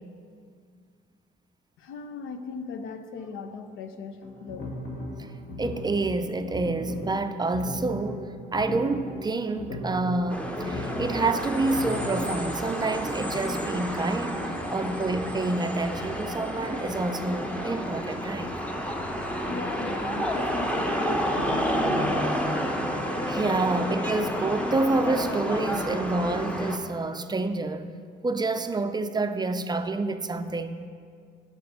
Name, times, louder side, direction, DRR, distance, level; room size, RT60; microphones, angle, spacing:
voice 1, 1.8-4.7 19.5-22.2, left 4 dB, 85° left, 9 dB, 0.6 m, -38 dB
sound 1, 4.2-12.3, left 1 dB, 65° left, 2.1 m, -37 dB
voice 2, 5.6-14.4 14.7-18.5 23.3-27.9 28.2-30.8, right 3 dB, 20° right, 9 dB, 0.4 m, -28 dB
sound 2, 10.3-26.8, equal, 5° left, 0.7 m, -30 dB
6.7 x 4.8 x 6.7 m, 2.1 s
cardioid pair, 90°, 20 cm